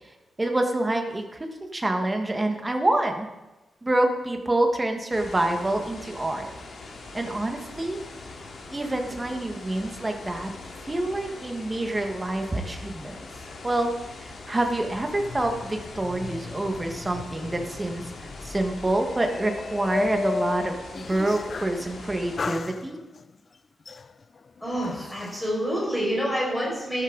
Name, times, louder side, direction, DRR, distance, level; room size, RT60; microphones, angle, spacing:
voice 1, 0.4-1.5 1.7-3.3 3.8-6.5 7.1-8.0 8.7-10.5 10.8-13.2 13.6-23.0 24.9-25.1, right 1 dB, 15° right, 3 dB, 1.5 m, -27 dB
sound 1, 5.1-22.4, left 3 dB, 65° left, 2.4 m, -42 dB
sound 2, 14.9-21.9 22.4-23.3 23.9-25.4, left 4 dB, 40° left, 0.4 m, -35 dB
voice 2, 24.6-27.0, equal, 5° left, -5 dB, 5.4 m, -27 dB
13.0 x 12.5 x 3.9 m, 1.1 s
wide cardioid pair, 170°, 0 cm